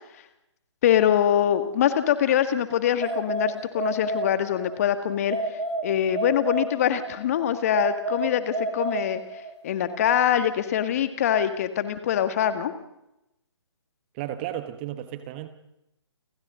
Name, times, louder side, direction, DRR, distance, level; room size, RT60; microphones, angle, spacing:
voice 1, 0.8-5.4 5.8-9.2 9.6-12.7, left 10 dB, 30° left, 10 dB, 2.0 m, -23 dB
sound 1, 3.0-4.8 5.3-7.2 7.7-9.6, right 2 dB, 75° right, 3.7 m, -30 dB
voice 2, 14.1-15.5, right 12 dB, 20° right, 10 dB, 1.3 m, -33 dB
30.0 x 26.5 x 3.9 m, 0.87 s
figure-of-eight pair, 140°, 15 cm